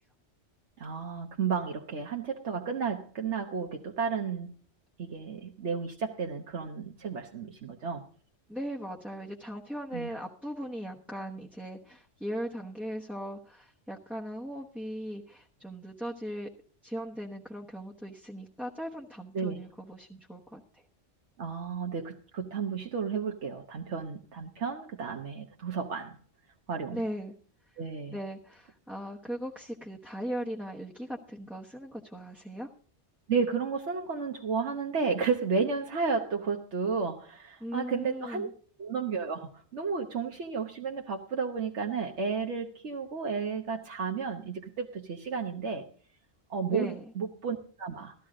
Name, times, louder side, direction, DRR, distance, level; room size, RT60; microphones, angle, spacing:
voice 1, 0.8-4.5 5.0-8.1 9.9-10.1 19.3-19.6 21.4-26.2 26.7-27.0 27.8-28.2 33.3-38.5 38.8-45.8 46.5-48.1, right 5 dB, 80° right, 2 dB, 1.4 m, -32 dB
voice 2, 8.5-16.5 16.8-20.8 26.9-27.3 28.1-32.7 37.6-38.5 46.7-47.0, equal, ahead, -2 dB, 1.0 m, -38 dB
14.0 x 13.5 x 3.8 m, 0.41 s
omnidirectional pair, 1.2 m